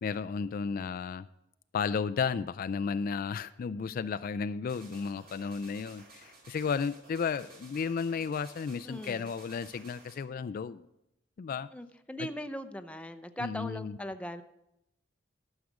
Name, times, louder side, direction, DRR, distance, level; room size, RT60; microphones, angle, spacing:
voice 1, 0.0-1.3 1.7-10.8 11.4-11.7 12.2-12.3 13.4-14.0, left 5 dB, 50° left, 13 dB, 0.3 m, -33 dB
sound 1, 4.7-10.2, right 3 dB, 55° right, 2.5 m, -55 dB
voice 2, 8.8-9.3 11.7-14.4, equal, 5° left, 9 dB, 0.6 m, -39 dB
13.0 x 6.4 x 6.0 m, 0.84 s
head